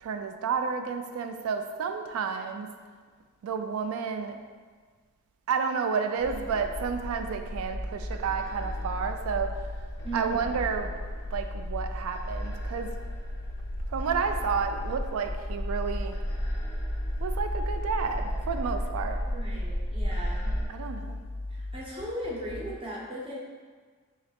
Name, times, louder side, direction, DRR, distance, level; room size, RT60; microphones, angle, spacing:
voice 1, 0.0-2.7 3.4-4.4 5.5-9.6 10.1-10.9 11.3-12.9 13.9-16.2 17.2-19.2 20.7-21.2, right 5 dB, 75° right, 7 dB, 0.3 m, -31 dB
sound 1, 6.2-20.7, equal, 15° left, 0.6 m, -34 dB
sound 2, 6.7-22.7, left 2 dB, 60° left, 0.4 m, -39 dB
voice 2, 10.0-10.5 19.3-20.6 21.5-23.3, right 1 dB, 25° right, -4 dB, 0.7 m, -37 dB
3.7 x 3.1 x 2.9 m, 1.5 s
head